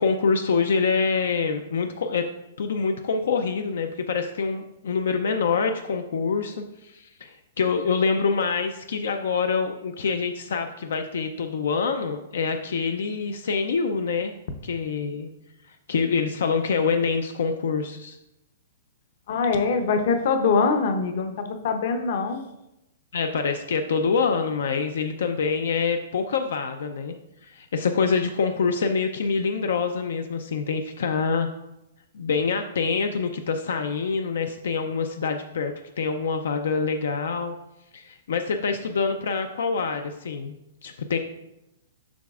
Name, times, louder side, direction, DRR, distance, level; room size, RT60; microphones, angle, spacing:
voice 1, 0.0-2.2 2.6-14.3 14.6-15.3 15.7-18.2 23.1-27.1 27.4-31.5 32.1-37.5 37.9-40.5 40.8-41.2, left 5 dB, 80° left, 6 dB, 0.4 m, -26 dB
voice 2, 19.3-22.4, left 4 dB, 50° left, 7 dB, 0.7 m, -23 dB
7.3 x 5.9 x 2.4 m, 0.90 s
hypercardioid pair, 165°, 0 cm